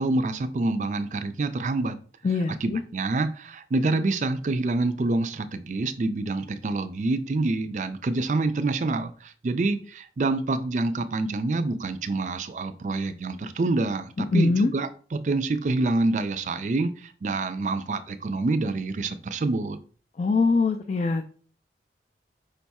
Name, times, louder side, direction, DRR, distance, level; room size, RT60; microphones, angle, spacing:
voice 1, 0.0-2.0 2.6-19.8, right 2 dB, 45° right, 0.4 m, -27 dB
voice 2, 2.2-2.8 14.2-14.7 20.2-21.3, left 3 dB, 40° left, 0.3 m, -23 dB
5.1 x 2.3 x 4.1 m
head